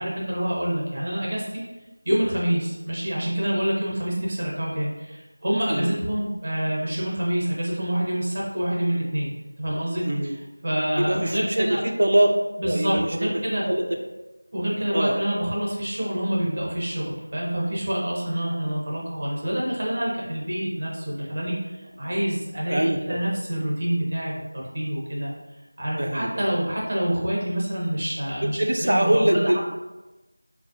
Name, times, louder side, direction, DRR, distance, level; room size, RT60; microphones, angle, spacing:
voice 1, 0.0-1.4 2.1-4.9 5.4-9.3 9.6-10.0 10.6-11.8 12.6-13.6 14.5-21.5 22.0-24.3 24.7-25.3 25.8-29.6, equal, 35° right, -4 dB, 0.8 m, -26 dB
voice 2, 10.0-10.4 11.0-12.4 12.6-13.3 13.7-13.8 14.9-15.2 22.0-22.2 22.7-23.2 26.0-26.3 28.4-29.6, right 1 dB, 55° right, 3 dB, 0.4 m, -23 dB
4.1 x 2.1 x 2.7 m, 1.1 s
figure-of-eight pair, 175°, 0 cm